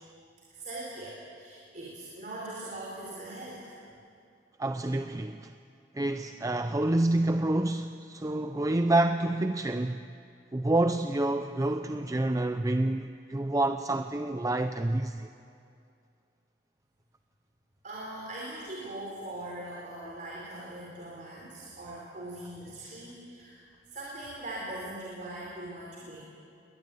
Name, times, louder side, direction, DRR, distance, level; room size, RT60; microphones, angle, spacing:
voice 1, 0.5-3.8 17.8-23.6 23.9-26.2, right 1 dB, 50° right, 3.9 m, -41 dB
voice 2, 4.6-5.5 5.9-10.1 10.5-15.3, right 2 dB, 20° right, 0.5 m, -28 dB
22.0 x 19.5 x 9.1 m
head